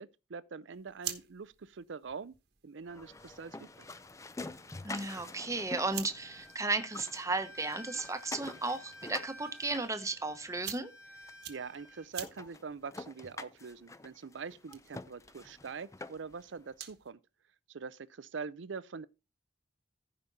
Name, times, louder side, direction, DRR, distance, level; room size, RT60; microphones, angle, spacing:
voice 1, 0.0-2.4 2.6-3.9 11.5-17.2 17.7-19.1, right 5 dB, 75° right, 0.5 m, -44 dB
sound 1, 0.7-17.1, right 11 dB, 60° right, 1.3 m, -50 dB
sound 2, 2.9-6.6 6.8-10.6 11.3-11.4 11.8-11.9 12.2-16.4, left 3 dB, 15° left, 0.5 m, -47 dB
voice 2, 4.8-10.9, right 3 dB, 15° right, 1.0 m, -34 dB
Bowed string instrument, 6.1-12.1, equal, 85° left, 4.8 m, -53 dB
15.0 x 5.2 x 4.0 m
head